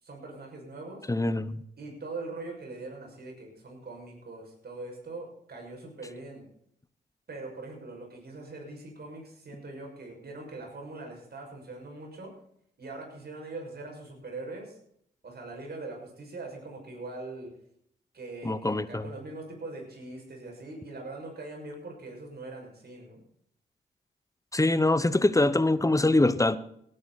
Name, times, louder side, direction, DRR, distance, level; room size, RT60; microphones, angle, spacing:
voice 1, 0.0-1.1 1.8-6.5 7.3-12.3 12.8-14.8 15.2-17.6 18.1-23.2, right 2 dB, 60° right, 1 dB, 6.5 m, -42 dB
voice 2, 1.1-1.6 18.4-19.0 24.5-26.6, left 2 dB, 15° left, 15 dB, 1.1 m, -24 dB
17.5 x 11.0 x 4.3 m, 0.69 s
supercardioid pair, 45°, 19 cm